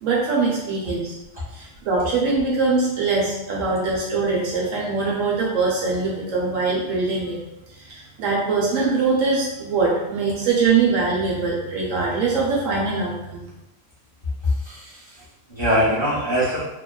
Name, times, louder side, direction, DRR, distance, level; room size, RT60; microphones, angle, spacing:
voice 1, 0.0-1.2 1.5-7.4 7.7-13.5, right 4 dB, 75° right, -4 dB, 0.9 m, -22 dB
voice 2, 14.4-16.6, equal, 25° left, -10 dB, 0.7 m, -23 dB
2.8 x 2.2 x 2.2 m, 0.92 s
omnidirectional pair, 1.4 m